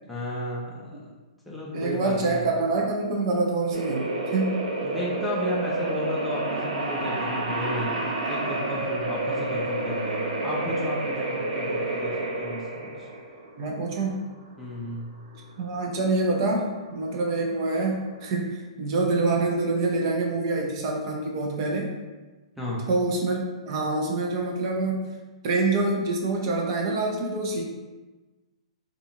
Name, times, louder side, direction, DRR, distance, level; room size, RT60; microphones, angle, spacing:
voice 1, 0.1-1.1 1.5-2.4 4.8-13.1 14.6-15.2 22.6-22.9, left 1 dB, ahead, -7 dB, 0.5 m, -33 dB
voice 2, 1.7-4.6 13.6-14.3 15.6-21.9 22.9-25.1 25.4-27.6, right 3 dB, 45° right, 0 dB, 0.6 m, -26 dB
sound 1, 3.7-18.3, right 2 dB, 85° right, 0.6 m, -30 dB
2.4 x 2.4 x 2.9 m, 1.2 s
hypercardioid pair, 125°, 4 cm